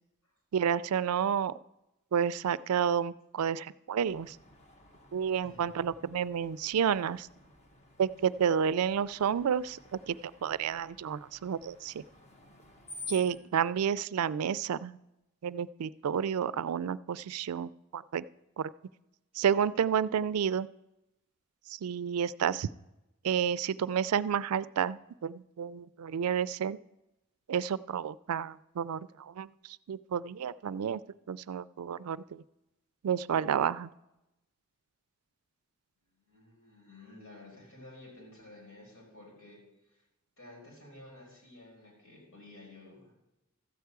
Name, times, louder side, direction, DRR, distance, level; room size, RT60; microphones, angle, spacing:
voice 1, 0.5-1.5 2.1-4.4 5.1-7.3 8.0-12.0 13.1-15.0 15.4-18.2 18.6-18.7 19.3-20.7 21.7-22.7 23.2-26.8 27.5-31.0 31.3-32.4 33.0-33.9, right 8 dB, 90° right, 17 dB, 0.4 m, -30 dB
Screech, 4.1-13.4, left 2 dB, 30° left, 1.3 m, -51 dB
voice 2, 5.4-5.9 36.2-40.0 40.4-43.1, left 2 dB, 80° left, -2 dB, 5.1 m, -52 dB
13.5 x 4.7 x 8.1 m, 0.91 s
head